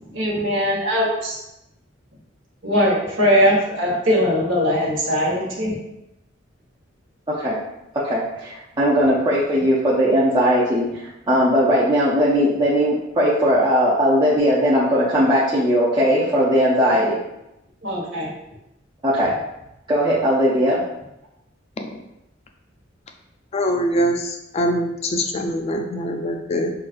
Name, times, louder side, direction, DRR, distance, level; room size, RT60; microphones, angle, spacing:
voice 1, 0.0-1.4 2.6-5.8 17.8-18.3, equal, 75° right, -4 dB, 1.2 m, -20 dB
voice 2, 7.3-7.6 7.9-11.0 11.3-17.2 19.0-19.3 19.9-20.8, equal, 25° right, -8 dB, 0.6 m, -18 dB
voice 3, 23.5-26.7, equal, 35° left, 4 dB, 0.4 m, -23 dB
5.7 x 2.4 x 2.5 m, 0.88 s
head